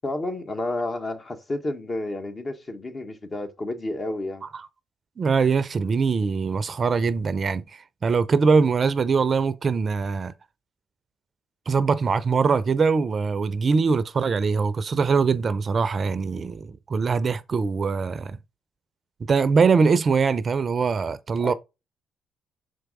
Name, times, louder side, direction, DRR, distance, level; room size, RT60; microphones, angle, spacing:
voice 1, 0.0-4.4 21.4-21.5, left 2 dB, 35° left, 1.4 m, -30 dB
voice 2, 5.2-10.3 11.7-18.4 19.3-21.5, right 5 dB, 45° right, 0.5 m, -22 dB
6.4 x 4.5 x 3.8 m
hypercardioid pair, 55°, 0 cm